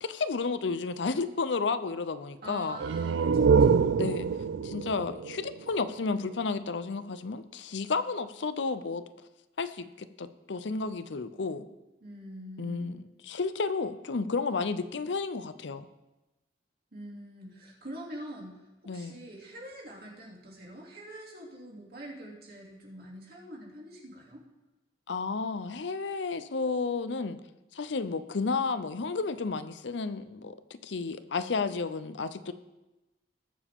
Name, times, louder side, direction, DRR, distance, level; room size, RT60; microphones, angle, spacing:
voice 1, 0.0-2.8 4.0-4.3 4.6-9.0 9.6-11.7 12.6-15.9 18.9-19.2 25.1-27.4 27.7-32.5, left 4 dB, 75° left, 13 dB, 0.6 m, -32 dB
voice 2, 2.4-4.1 12.0-12.9 16.9-24.4, right 1 dB, 55° right, -2 dB, 2.8 m, -45 dB
sound 1, 2.7-6.3, right 5 dB, 90° right, 0.4 m, -26 dB
20.5 x 7.3 x 3.6 m, 1.0 s
head